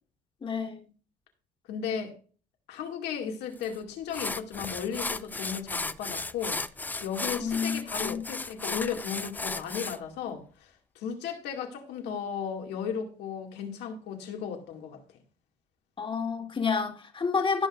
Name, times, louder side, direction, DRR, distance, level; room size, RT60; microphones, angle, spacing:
voice 1, 0.4-0.9 7.4-8.3 16.0-17.7, left 5 dB, 30° left, 1.8 m, -30 dB
voice 2, 1.7-2.1 2.7-6.6 7.0-15.0, left 7 dB, 85° left, 2.4 m, -35 dB
sound 1, 3.6-3.7 4.1-10.0, left 3 dB, 10° left, 0.4 m, -35 dB
17.5 x 6.1 x 2.6 m
cardioid pair, 110°, 17 cm